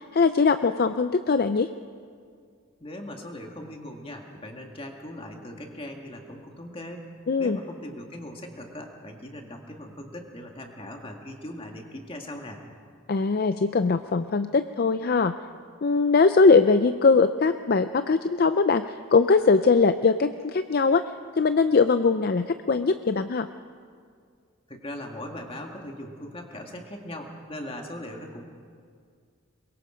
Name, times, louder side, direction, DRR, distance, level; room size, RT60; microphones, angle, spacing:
voice 1, 0.1-1.7 7.3-7.6 13.1-15.3 15.8-21.0 21.4-23.5, left 4 dB, 45° left, 10 dB, 0.5 m, -21 dB
voice 2, 2.8-7.1 7.4-12.6 24.7-28.4, left 1 dB, 25° left, 2 dB, 2.0 m, -39 dB
23.5 x 22.0 x 5.1 m, 2.1 s
head